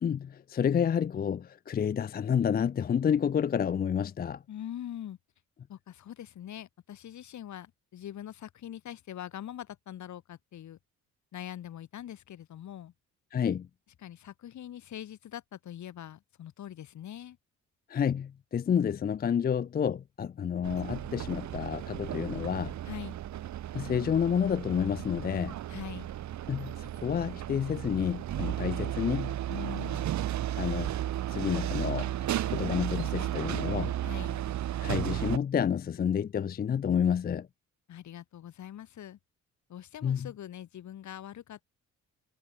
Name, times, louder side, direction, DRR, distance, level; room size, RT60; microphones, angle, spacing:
voice 1, 0.0-4.4 13.3-13.7 17.9-22.7 23.7-25.6 26.5-29.4 30.6-30.9 31.3-32.1 32.5-33.9 34.8-37.5 40.0-40.3, left 8 dB, 30° left, 0.5 m, -29 dB
voice 2, 4.5-5.2 5.7-10.8 11.3-12.9 14.0-17.4 22.8-23.2 25.7-26.1 29.5-30.1 34.0-34.4 37.9-39.2 39.7-41.6, left 11 dB, 70° left, 5.9 m, -43 dB
sound 1, 20.6-35.4, right 12 dB, 65° right, 1.4 m, -34 dB
cardioid pair, 90°, 30 cm